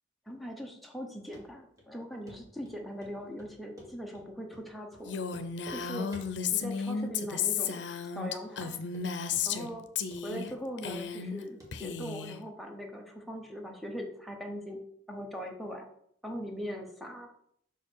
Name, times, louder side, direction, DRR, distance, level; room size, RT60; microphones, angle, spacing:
voice 1, 0.3-5.2 5.7-6.1 6.5-7.8 8.1-8.8 9.5-9.9 10.2-14.8 15.1-15.9 16.2-17.3, equal, ahead, 1 dB, 0.9 m, -40 dB
Run, 1.3-1.4 1.8-1.9 2.3-2.4 2.6-3.1 3.4-4.3 4.5-4.7 4.9-5.0 5.3-5.8 6.1-6.6 7.0-7.4 7.7-7.8 8.2-8.3 8.6-9.1 9.3-9.8 10.1-11.3 11.6-11.7 12.0-12.1, equal, 20° right, 1.5 m, -51 dB
Female speech woman speaking, 5.1-9.7 10.0-10.5 10.8-11.4 11.7-12.4, left 7 dB, 80° left, 0.6 m, -33 dB
5.7 x 4.7 x 4.5 m, 0.69 s
head